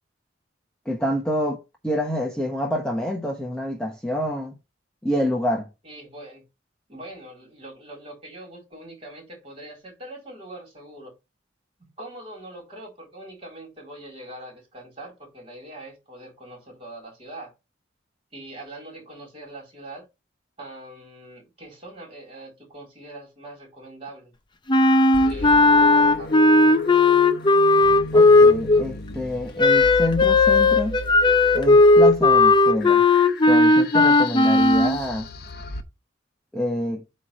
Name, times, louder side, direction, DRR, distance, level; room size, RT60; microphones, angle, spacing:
voice 1, 0.8-4.6 5.0-5.7 28.1-31.0 31.5-33.0 33.5-35.3 36.5-37.0, left 1 dB, 5° left, 1.1 m, -27 dB
voice 2, 5.8-6.4 6.9-11.1 12.0-17.5 18.3-20.0 20.6-24.3 25.2-26.3, right 1 dB, 30° right, 4.0 m, -42 dB
Wind instrument woodwind instrument, 24.7-28.9 29.6-35.0, left 2 dB, 25° left, 0.6 m, -16 dB
sound 1, 25.1-35.8, left 3 dB, 55° left, 0.8 m, -34 dB
8.4 x 3.2 x 5.7 m
head